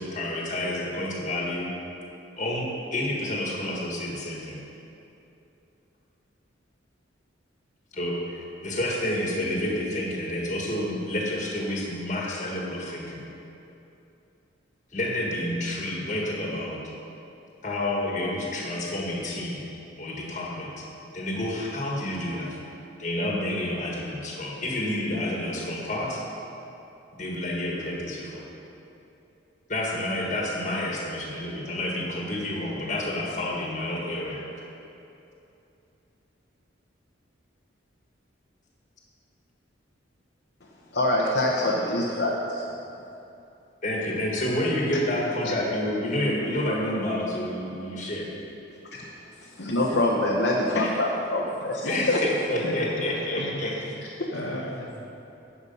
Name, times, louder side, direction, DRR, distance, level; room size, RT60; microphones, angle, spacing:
voice 1, 0.0-1.7 2.4-4.6 7.9-13.2 14.9-16.8 17.6-19.6 20.0-20.8 21.1-22.6 23.0-26.2 27.2-28.4 29.7-34.4 43.8-48.3 51.9-53.7, left 1 dB, 40° left, 1.6 m, -29 dB
voice 2, 40.9-42.7 48.9-49.1 49.4-52.2 54.2-54.3, left 1 dB, 55° left, 0.9 m, -25 dB
voice 3, 49.5-50.0 51.8-52.2 52.6-53.8 54.3-55.1, left 1 dB, 75° left, 1.4 m, -36 dB
11.0 x 7.0 x 5.3 m
head